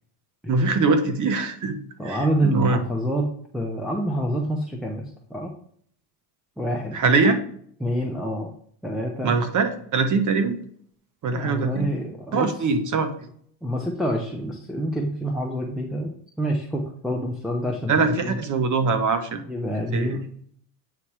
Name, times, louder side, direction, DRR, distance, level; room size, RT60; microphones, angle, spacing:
voice 1, 0.5-1.8 2.0-2.8 6.9-7.4 9.2-10.6 11.2-11.9 12.3-13.1 17.9-19.4 19.9-20.2, right 4 dB, 40° right, 8 dB, 1.0 m, -22 dB
voice 2, 2.0-3.3 3.5-5.5 6.6-7.0 7.8-8.5 8.8-9.3 11.3-12.5 13.6-18.4 19.5-20.2, equal, ahead, -2 dB, 0.8 m, -27 dB
8.4 x 2.9 x 4.8 m, 0.62 s
supercardioid pair, 100°, 48 cm